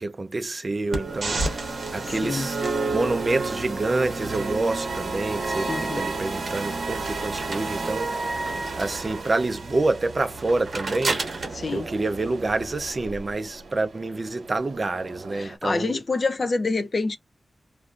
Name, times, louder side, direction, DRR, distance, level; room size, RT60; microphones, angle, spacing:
voice 1, 0.0-2.6 2.9-8.4 8.8-11.2 11.7-16.0, right 2 dB, 30° right, 0.4 m, -27 dB
sound 1, 0.8-15.6, right 3 dB, 85° right, 0.7 m, -43 dB
sound 2, 0.9-12.9, right 3 dB, 50° right, 1.0 m, -30 dB
voice 2, 2.0-2.5 5.7-6.1 11.5-11.9 15.3-17.2, left 3 dB, 35° left, 0.4 m, -27 dB
3.1 x 2.5 x 2.4 m
wide cardioid pair, 170°, 0 cm